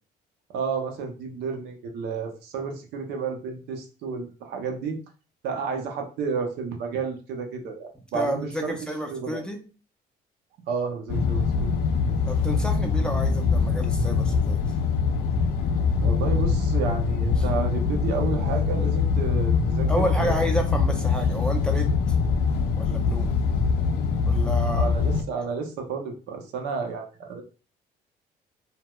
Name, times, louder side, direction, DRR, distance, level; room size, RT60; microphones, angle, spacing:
voice 1, 0.5-5.0 5.4-8.7 9.1-9.4 10.7-11.7 16.0-20.5 24.7-27.4, right 5 dB, 80° right, 3 dB, 0.6 m, -31 dB
voice 2, 8.1-9.6 12.3-14.6 19.9-22.0 22.8-23.3 24.2-24.9, equal, 5° left, 2 dB, 0.4 m, -30 dB
sound 1, 11.1-25.2, left 5 dB, 90° left, 0.4 m, -23 dB
2.7 x 2.0 x 2.2 m, 0.35 s
cardioid pair, 110°, 17 cm